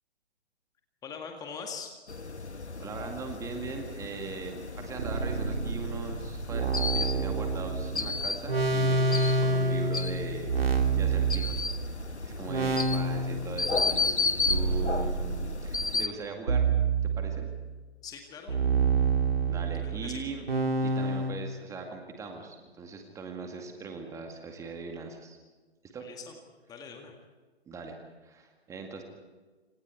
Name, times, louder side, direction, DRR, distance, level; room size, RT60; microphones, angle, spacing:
voice 1, 1.0-1.9 18.0-18.6 20.0-20.2 26.0-26.3 26.7-27.1, left 6 dB, 10° left, 3 dB, 1.9 m, -41 dB
sound 1, 2.1-16.1, left 3 dB, 75° left, 1.4 m, -34 dB
voice 2, 2.8-11.9 12.2-16.7 17.0-17.5 19.5-20.5 20.8-25.4 25.9-26.1 27.7-29.0, right 4 dB, 10° right, 3 dB, 2.0 m, -40 dB
sound 2, 5.0-12.0 12.5-13.6 14.5-15.6 16.5-17.7 18.5-21.3, right 4 dB, 60° right, 3.7 m, -28 dB
27.5 x 26.0 x 4.7 m, 1.3 s
figure-of-eight pair, 130°, 33 cm